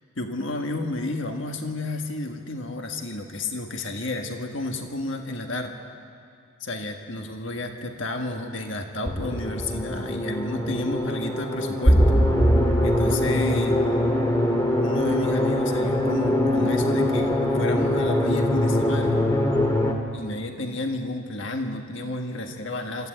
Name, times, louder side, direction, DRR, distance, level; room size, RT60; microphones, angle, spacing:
voice 1, 0.2-5.9 6.6-12.0 12.8-13.8 14.8-19.2 20.1-23.1, left 2 dB, 60° left, 4 dB, 1.6 m, -31 dB
sound 1, 9.1-19.9, left 1 dB, 15° left, 1.8 m, -22 dB
25.5 x 14.5 x 9.1 m, 2.3 s
head